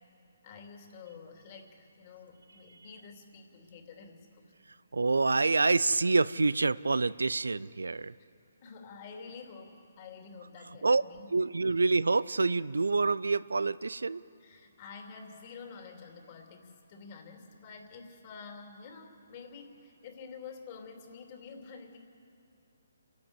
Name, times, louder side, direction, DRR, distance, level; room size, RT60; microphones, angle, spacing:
voice 1, 0.4-4.5 8.6-11.4 14.4-22.0, left 5 dB, 35° left, 2 dB, 3.0 m, -49 dB
voice 2, 4.9-8.1 10.8-11.0 11.3-14.2, right 3 dB, 85° right, 18 dB, 0.5 m, -27 dB
28.0 x 11.5 x 8.2 m, 2.6 s
hypercardioid pair, 145°, 0 cm